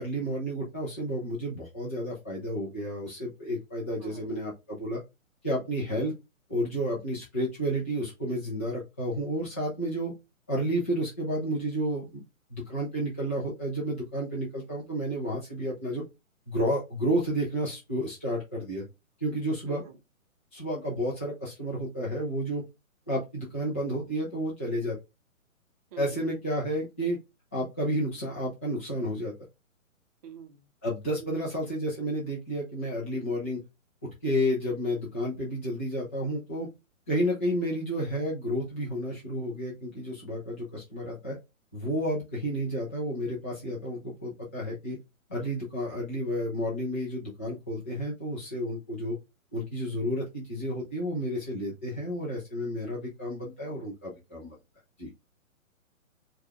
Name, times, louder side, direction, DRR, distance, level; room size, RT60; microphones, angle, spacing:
voice 1, 0.0-5.0 5.4-6.1 6.5-10.1 10.5-12.2 12.5-16.0 16.5-18.8 19.2-19.8 20.5-22.6 23.1-25.0 26.0-27.2 27.5-29.3 30.8-33.6 34.2-36.7 37.1-41.4 41.7-45.0 45.3-49.2 49.5-54.6 55.0-55.1, equal, 10° left, 0.4 m, -31 dB
voice 2, 4.0-4.3 19.7-20.0 25.9-26.2 30.2-30.7 31.2-31.4, right 8 dB, 25° right, 0.7 m, -45 dB
4.6 x 2.3 x 3.4 m
figure-of-eight pair, 130°, 42 cm